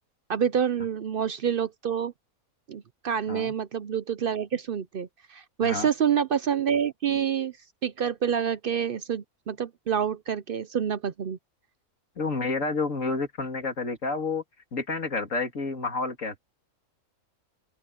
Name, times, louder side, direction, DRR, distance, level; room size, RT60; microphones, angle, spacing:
voice 1, 0.3-2.1 2.7-7.5 7.8-11.4, right 8 dB, 60° right, 0.6 m, -27 dB
voice 2, 12.2-14.4 14.7-16.4, left 3 dB, 60° left, 3.0 m, -29 dB
open air
omnidirectional pair, 1.5 m